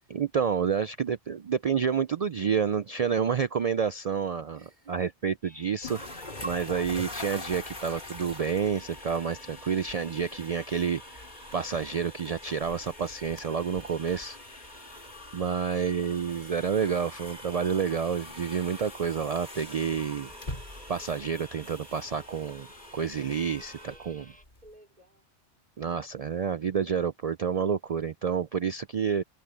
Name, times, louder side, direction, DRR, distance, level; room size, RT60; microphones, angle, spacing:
voice 1, 0.1-4.6 4.9-11.2 11.5-14.4 15.3-20.3 20.9-22.7 22.9-24.3 25.8-29.2, right 7 dB, 65° right, 0.3 m, -29 dB
voice 2, 4.5-5.0 24.1-25.3, right 2 dB, 40° right, 3.5 m, -56 dB
sound 1, 5.4-24.4, left 1 dB, 5° left, 1.2 m, -54 dB
sound 2, 5.8-24.7, left 2 dB, 40° left, 3.1 m, -44 dB
omnidirectional pair, 1.2 m